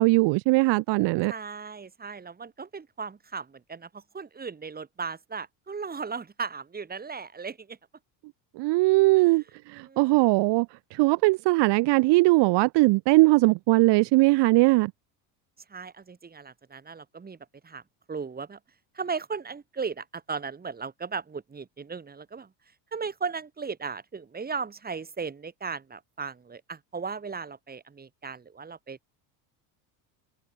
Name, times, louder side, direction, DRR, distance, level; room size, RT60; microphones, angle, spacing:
voice 1, 0.0-1.3 8.6-9.4 9.7-10.7 10.9-14.9, right 23 dB, 60° right, 2.0 m, -20 dB
voice 2, 1.3-7.8 9.2-9.3 9.9-10.3 15.7-17.4 17.6-17.8 18.1-18.6 19.0-22.5 22.9-29.0, right 5 dB, 20° right, 5.4 m, -36 dB
cardioid pair, 130°, 47 cm